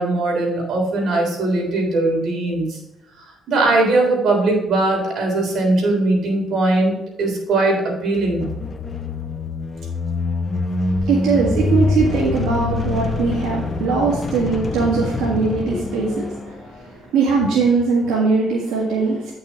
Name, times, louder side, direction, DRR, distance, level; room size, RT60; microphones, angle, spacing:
voice 1, 0.0-2.8 3.5-8.5, right 2 dB, 70° right, 0 dB, 3.4 m, -20 dB
sound 1, 8.2-16.9, left 3 dB, 35° left, 0.9 m, -25 dB
voice 2, 10.8-19.3, right 4 dB, 90° right, -4 dB, 1.8 m, -20 dB
9.3 x 6.0 x 4.2 m, 0.88 s
cardioid pair, 90°, 0 cm